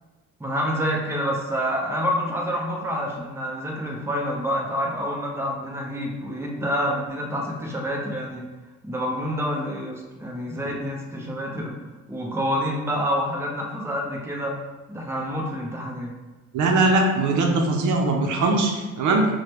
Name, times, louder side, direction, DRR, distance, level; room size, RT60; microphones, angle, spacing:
voice 1, 0.4-8.4 8.8-11.7 12.1-14.6 14.9-16.1, equal, 10° right, -2 dB, 0.7 m, -27 dB
voice 2, 16.5-19.3, right 2 dB, 75° right, 1 dB, 0.6 m, -21 dB
4.7 x 2.2 x 2.9 m, 1.2 s
cardioid pair, 90°, 30 cm